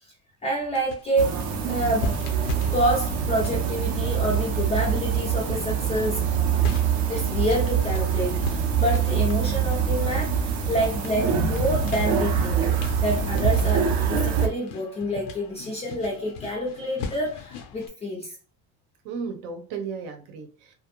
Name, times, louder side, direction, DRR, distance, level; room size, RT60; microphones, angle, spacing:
voice 1, 0.4-1.4 1.6-2.1 2.7-6.3 7.1-12.6 13.0-18.3, equal, 20° left, 0.3 m, -27 dB
sound 1, 0.5-5.7 6.2-17.9, left 5 dB, 85° left, 0.6 m, -39 dB
sound 2, 1.2-14.5, right 7 dB, 50° right, 0.5 m, -24 dB
voice 2, 19.0-20.8, right 5 dB, 80° right, 0.8 m, -36 dB
2.4 x 2.0 x 2.9 m
cardioid pair, 160°, 38 cm